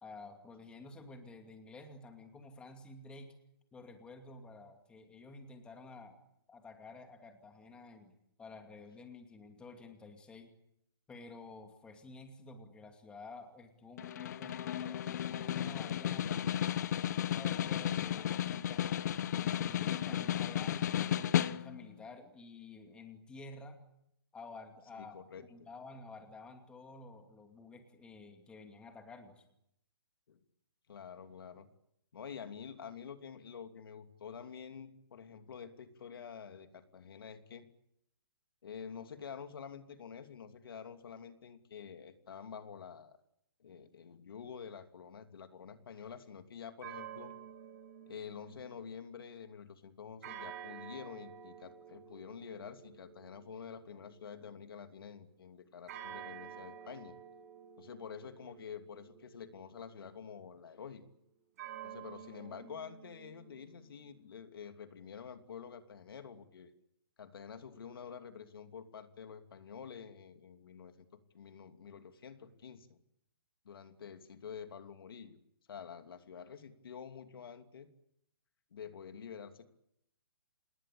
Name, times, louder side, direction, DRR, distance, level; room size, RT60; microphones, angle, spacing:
voice 1, 0.0-3.3 3.7-6.2 6.5-8.1 8.4-10.5 11.1-16.7 17.2-18.9 19.3-23.8 24.3-29.4, left 3 dB, 5° left, 5 dB, 2.5 m, -51 dB
Snare drum, 14.0-21.9, left 10 dB, 45° left, 0.9 m, -34 dB
voice 2, 15.7-16.6 25.0-25.7 30.3-30.4 30.9-31.7 32.1-37.7 38.6-43.2 43.6-47.3 48.1-57.2 57.8-61.0 61.8-66.7 67.2-73.0 73.6-75.4 75.7-77.9 78.7-79.7, left 7 dB, 65° left, 8 dB, 2.8 m, -48 dB
sound 1, 46.8-49.2 50.2-55.1 55.9-60.8 61.6-64.0, right 9 dB, 40° right, 7.2 m, -51 dB
27.5 x 21.0 x 8.5 m, 0.77 s
hypercardioid pair, 160°, 13 cm